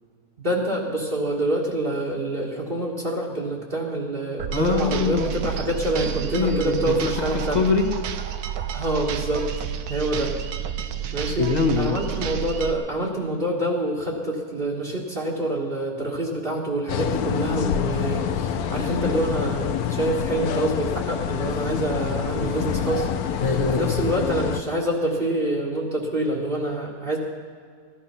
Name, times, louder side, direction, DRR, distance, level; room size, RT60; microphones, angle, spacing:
voice 1, 0.4-7.6 8.7-9.5 9.9-10.4 11.1-11.5 11.8-23.4 23.8-27.2, right 1 dB, 40° right, -2 dB, 1.8 m, -26 dB
sound 1, 4.4-12.7, right 9 dB, 90° right, 1.3 m, -30 dB
voice 2, 4.5-5.5 6.3-7.9 11.4-12.0 21.5-21.9 22.4-22.6 23.4-23.9, left 4 dB, 30° left, 2 dB, 1.6 m, -24 dB
sound 2, 16.9-24.6, left 8 dB, 80° left, 1.3 m, -26 dB
15.5 x 12.0 x 5.7 m, 2.1 s
omnidirectional pair, 1.6 m